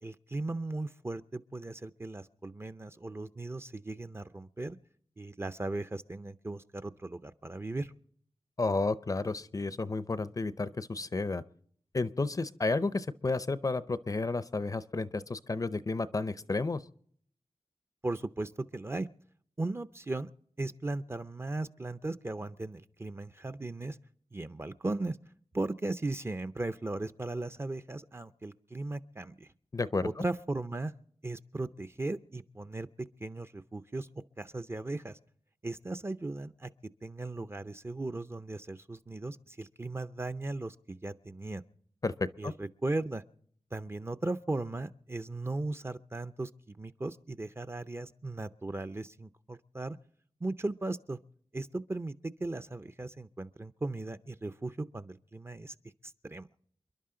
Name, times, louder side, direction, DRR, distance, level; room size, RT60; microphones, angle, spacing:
voice 1, 0.0-4.8 5.2-7.9 18.0-19.1 19.6-20.3 20.6-24.0 24.3-25.2 25.5-29.5 30.0-30.9 31.2-32.9 33.2-34.1 34.4-35.2 35.6-36.7 37.0-41.6 42.4-43.2 43.7-50.0 50.4-51.2 51.5-55.7 56.2-56.5, right 2 dB, 25° right, 10 dB, 0.5 m, -37 dB
voice 2, 8.6-11.4 11.9-16.8 29.7-30.2 42.0-42.5, left 3 dB, 35° left, 15 dB, 0.5 m, -32 dB
28.5 x 11.0 x 3.8 m, 0.63 s
wide cardioid pair, 115°, 10 cm